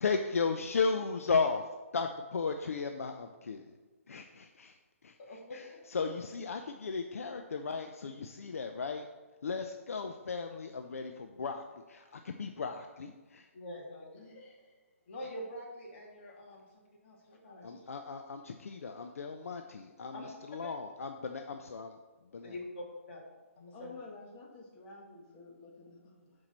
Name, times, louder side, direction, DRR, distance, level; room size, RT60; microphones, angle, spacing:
voice 1, 0.0-1.7 1.9-3.7 4.1-4.8 5.0-5.1 5.5-9.1 9.4-13.5 17.6-22.0 22.3-22.5, left 4 dB, 70° left, 5 dB, 0.7 m, -35 dB
voice 2, 5.2-5.8 13.5-14.3 15.1-17.9 20.1-20.3 20.6-20.7 22.4-23.2 23.6-24.0, left 1 dB, 50° left, -2 dB, 2.7 m, -45 dB
voice 3, 14.2-14.7 23.7-26.3, left 3 dB, 25° left, -3 dB, 1.7 m, -51 dB
11.5 x 4.8 x 4.2 m, 1.2 s
hypercardioid pair, 145°, 8 cm